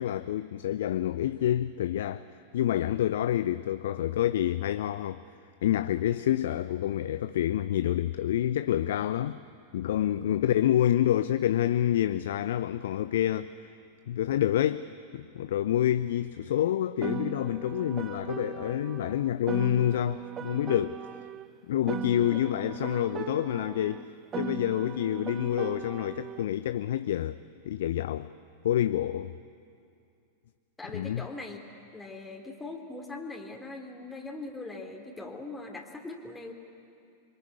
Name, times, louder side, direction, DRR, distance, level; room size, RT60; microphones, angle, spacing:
voice 1, 0.0-2.2 2.5-5.2 5.6-9.4 9.7-13.7 14.1-21.1 21.7-24.1 24.4-27.4 27.7-28.3 28.6-29.3 30.9-31.3, left 11 dB, 60° left, 0.6 m, -28 dB
Piano, 17.0-21.5 21.9-26.5, right 8 dB, 25° right, 0.7 m, -38 dB
voice 2, 30.8-31.6 31.9-36.5, left 2 dB, 10° left, 2.6 m, -41 dB
25.5 x 23.5 x 9.7 m
figure-of-eight pair, 90°, 0 cm